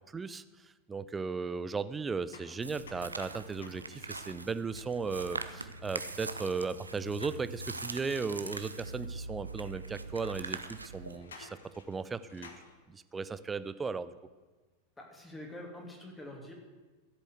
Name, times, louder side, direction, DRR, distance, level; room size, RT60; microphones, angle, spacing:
voice 1, 0.1-11.6 11.9-12.5 12.9-14.1, right 4 dB, 15° right, 15 dB, 0.6 m, -36 dB
sound 1, 2.3-6.1 8.9-9.0 9.8-9.9 11.1-12.8, left 4 dB, 65° left, 1.5 m, -55 dB
sound 2, 2.6-11.2, right 3 dB, 80° right, 0.7 m, -42 dB
voice 2, 15.0-16.5, left 1 dB, 10° left, 0 dB, 3.0 m, -46 dB
14.0 x 8.4 x 8.1 m, 1.3 s
figure-of-eight pair, 90°, 0 cm